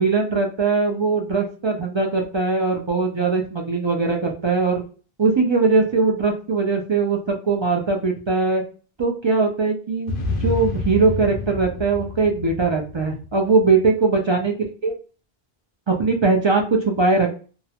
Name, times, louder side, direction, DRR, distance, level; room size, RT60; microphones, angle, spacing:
voice 1, 0.0-4.8 5.2-8.6 9.0-14.5 14.8-14.9 15.9-17.4, right 4 dB, 45° right, 1 dB, 0.3 m, -20 dB
sound 1, 10.1-13.6, left 3 dB, 65° left, 0.7 m, -29 dB
2.3 x 2.1 x 2.8 m, 0.36 s
omnidirectional pair, 1.0 m